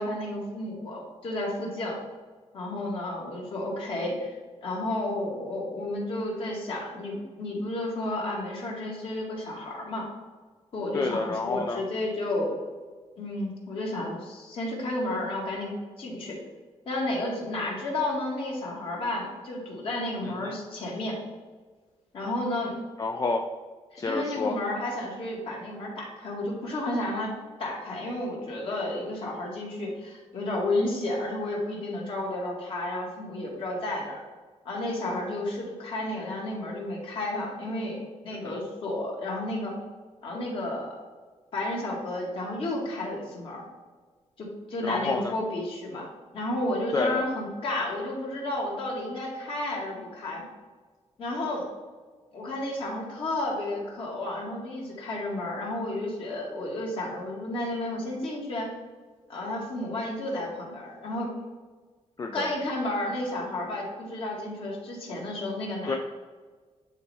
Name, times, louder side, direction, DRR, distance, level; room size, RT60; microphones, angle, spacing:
voice 1, 0.0-2.0 2.5-4.3 4.6-10.1 10.7-12.6 13.2-16.4 16.9-21.2 22.1-22.7 23.9-34.2 34.7-39.8 40.2-41.0 41.5-43.7 44.4-46.1 46.3-50.4 51.2-51.7 52.3-58.7 59.3-61.3 62.3-66.0, left 1 dB, 50° left, -3 dB, 2.0 m, -32 dB
voice 2, 10.9-11.8 20.2-20.5 23.0-23.4 24.0-24.6 38.4-38.6 44.8-45.3 46.9-47.2 62.2-62.5 65.9-66.0, left 3 dB, 30° left, 1 dB, 0.5 m, -29 dB
9.7 x 4.2 x 3.5 m, 1.4 s
wide cardioid pair, 170°, 12 cm